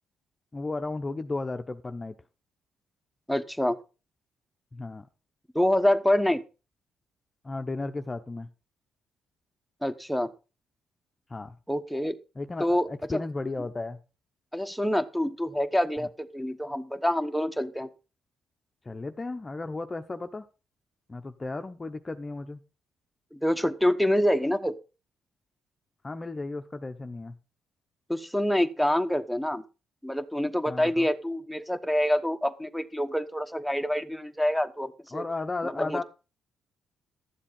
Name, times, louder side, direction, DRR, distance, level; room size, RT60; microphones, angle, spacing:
voice 1, 0.5-2.1 4.7-5.1 7.4-8.5 11.3-11.5 12.4-14.0 18.9-20.4 21.1-22.6 26.0-27.3 30.7-31.1 35.1-36.0, left 3 dB, 25° left, 8 dB, 0.8 m, -34 dB
voice 2, 3.3-3.8 5.5-6.4 9.8-10.3 11.7-12.2 12.6-13.2 14.5-17.9 23.3-24.7 28.1-29.6 30.0-35.2 35.6-36.0, left 1 dB, ahead, 10 dB, 1.1 m, -26 dB
12.0 x 7.5 x 5.3 m, 0.32 s
cardioid pair, 90°, 0 cm